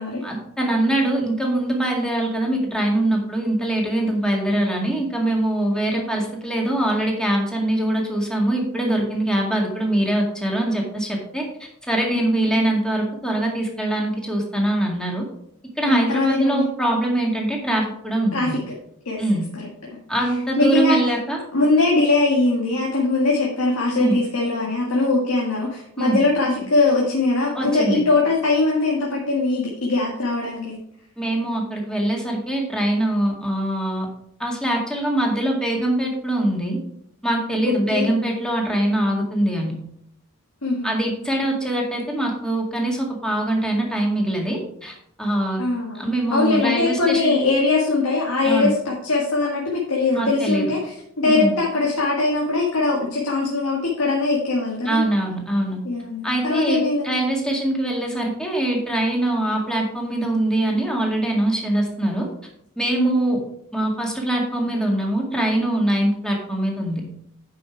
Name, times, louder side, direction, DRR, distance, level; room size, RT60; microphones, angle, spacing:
voice 1, 0.2-15.2 15.8-18.6 19.2-19.5 20.1-21.4 23.9-24.2 26.0-26.2 27.5-28.0 31.2-34.1 34.4-36.8 37.2-39.7 40.8-45.6 45.9-47.3 48.4-48.7 50.1-50.7 51.3-51.5 54.9-55.8 56.2-62.3 62.8-63.4 63.7-67.0, right 1 dB, 5° left, -1 dB, 1.9 m, -23 dB
voice 2, 15.8-16.7 18.3-18.6 19.1-19.2 19.6-19.7 20.6-21.0 21.5-30.8 37.9-38.2 40.6-40.9 45.6-55.0 55.8-57.1 62.9-63.1, left 3 dB, 85° left, -3 dB, 1.8 m, -21 dB
9.3 x 5.6 x 4.6 m, 0.72 s
head